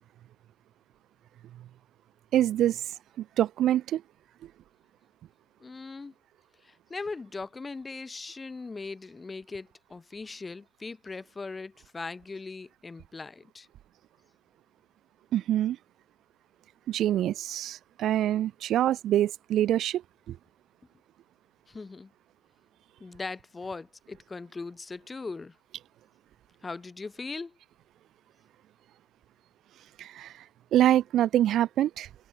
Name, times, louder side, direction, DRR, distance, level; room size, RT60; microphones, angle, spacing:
voice 1, 2.3-2.8 3.2-4.0 15.3-15.8 16.9-20.0 20.3-20.4 30.0-30.3 30.7-32.1, right 12 dB, 45° right, 4.1 m, -25 dB
voice 2, 5.6-6.1 6.6-13.7 21.7-22.1 23.0-25.6 26.6-27.6, left 3 dB, 15° left, 3.9 m, -39 dB
supercardioid pair, 95°, 0 cm